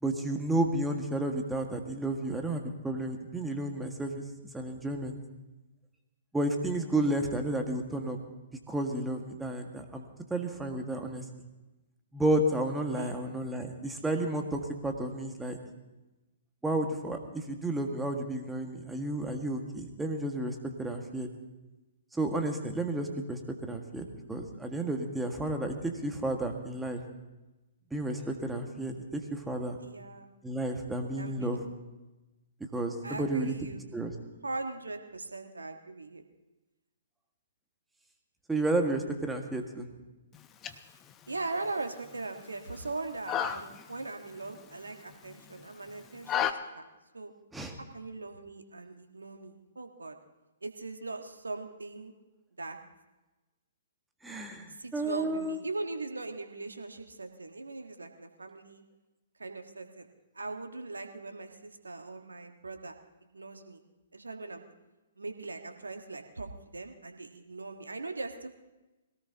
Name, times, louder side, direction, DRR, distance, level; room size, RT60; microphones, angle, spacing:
voice 1, 0.0-4.3 4.5-5.2 6.3-8.2 8.7-10.0 10.3-11.2 12.1-15.6 16.6-21.3 22.1-27.0 27.9-29.8 30.4-31.6 32.7-33.5 33.9-34.1 38.5-39.9 47.5-47.7 54.2-55.6, right 1 dB, 5° right, 3 dB, 1.7 m, -32 dB
voice 2, 29.8-30.3 31.2-31.6 33.0-33.8 34.4-36.2 41.3-46.8 47.1-47.3 47.9-50.2 50.6-52.1 52.6-52.8 54.7-58.8 59.4-60.1 60.3-63.0 63.3-63.8 64.1-64.6 65.2-68.5, right 3 dB, 80° right, 5 dB, 1.5 m, -40 dB
sound 1, 40.3-46.5, left 10 dB, 20° left, 0.8 m, -37 dB
22.0 x 17.5 x 2.9 m, 1.1 s
figure-of-eight pair, 120°, 0 cm